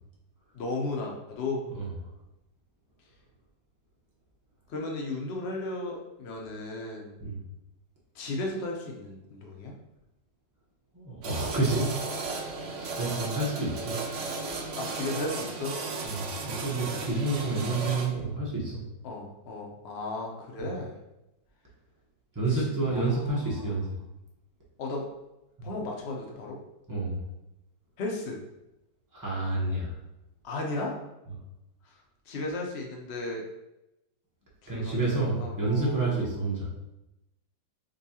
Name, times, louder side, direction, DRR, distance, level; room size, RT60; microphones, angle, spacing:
voice 1, 0.5-1.6 4.7-7.1 8.1-9.7 14.8-15.8 19.0-20.9 22.5-23.7 24.8-25.0 25.6-26.6 28.0-28.4 30.4-31.0 31.8-32.0 32.3-33.4 34.6-36.3, left 2 dB, 70° left, -1 dB, 0.6 m, -35 dB
voice 2, 10.9-12.2 12.8-14.0 16.0-18.8 20.6-20.7 22.3-23.9 25.6-25.7 26.9-27.2 29.1-30.0 34.7-36.7, right 2 dB, 25° right, -6 dB, 0.4 m, -29 dB
sound 1, 11.2-18.1, right 3 dB, 75° right, 0.6 m, -35 dB
5.3 x 2.3 x 2.8 m, 0.93 s
omnidirectional pair, 2.0 m